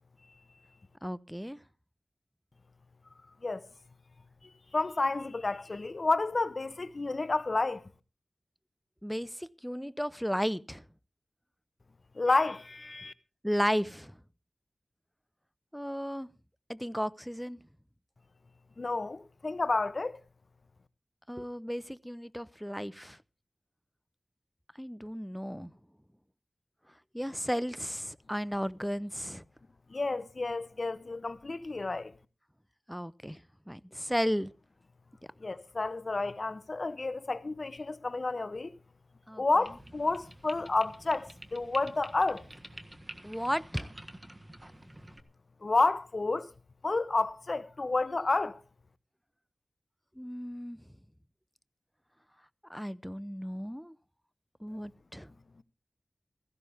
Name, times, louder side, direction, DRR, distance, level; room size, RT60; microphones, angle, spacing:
voice 1, 1.0-1.6 9.0-10.8 13.4-14.1 15.7-16.3 16.7-17.6 21.3-23.2 24.8-25.7 27.1-29.4 32.9-33.4 33.7-34.5 39.3-39.4 43.2-43.9 50.2-50.8 52.7-53.9 54.6-55.3, equal, ahead, 0.6 m, -34 dB
voice 2, 4.7-7.8 12.1-13.1 18.8-20.2 29.9-32.1 35.4-38.7 39.4-42.4 45.6-46.5 46.8-48.6, left 3 dB, 55° left, 0.8 m, -30 dB
sound 1, 39.6-45.2, right 1 dB, 20° right, 1.5 m, -48 dB
16.5 x 15.0 x 3.5 m
wide cardioid pair, 55°, 0 cm